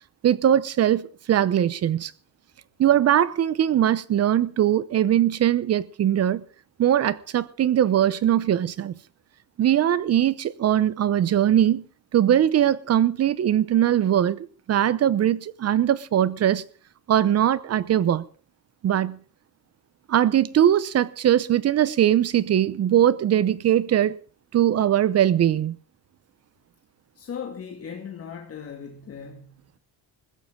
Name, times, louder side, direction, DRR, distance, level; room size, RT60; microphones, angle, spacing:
voice 1, 0.2-2.1 2.8-6.4 6.8-8.9 9.6-11.8 12.1-16.6 17.1-18.2 18.8-19.2 20.1-24.1 24.5-25.8, right 11 dB, 40° right, 0.8 m, -21 dB
voice 2, 27.1-29.8, left 7 dB, 35° left, 2.3 m, -38 dB
21.0 x 16.0 x 3.8 m
cardioid pair, 150°, 39 cm